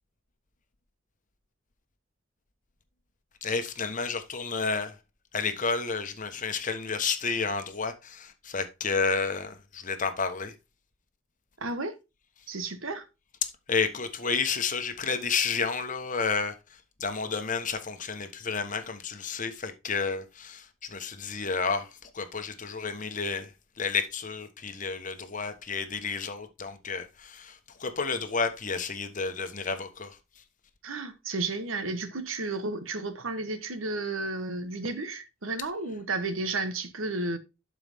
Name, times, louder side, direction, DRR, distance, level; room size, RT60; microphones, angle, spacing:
voice 1, 3.4-4.9 5.3-10.5 13.7-16.5 17.0-21.9 22.1-23.5 23.8-30.2, left 5 dB, 40° left, 1.2 m, -31 dB
voice 2, 11.6-11.9 12.5-13.1 30.8-37.4, right 3 dB, 80° right, 1.2 m, -32 dB
11.5 x 4.9 x 3.5 m
head